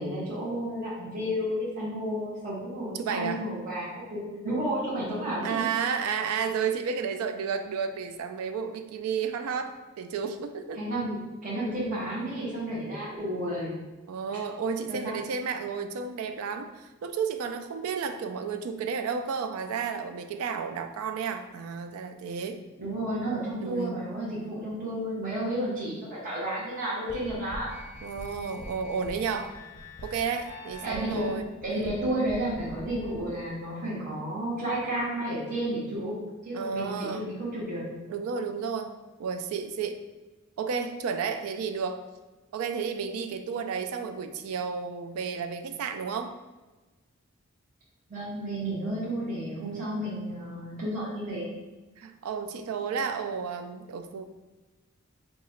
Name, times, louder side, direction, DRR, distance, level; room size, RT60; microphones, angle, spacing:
voice 1, 0.0-5.6 10.8-13.7 14.9-15.1 22.8-27.7 30.8-31.2 31.6-36.2 36.4-37.8 48.1-51.5, right 1 dB, 40° right, -8 dB, 1.0 m, -32 dB
voice 2, 3.0-3.4 5.4-10.8 14.1-22.6 23.6-24.0 28.0-29.5 30.0-32.0 36.5-37.3 38.1-40.0 40.6-42.0 42.5-46.4 49.6-49.9 52.0-54.2, right 6 dB, 80° right, 7 dB, 0.3 m, -32 dB
sound 1, 27.1-33.3, left 1 dB, 35° left, 0.6 m, -44 dB
2.8 x 2.4 x 4.2 m, 1.2 s
head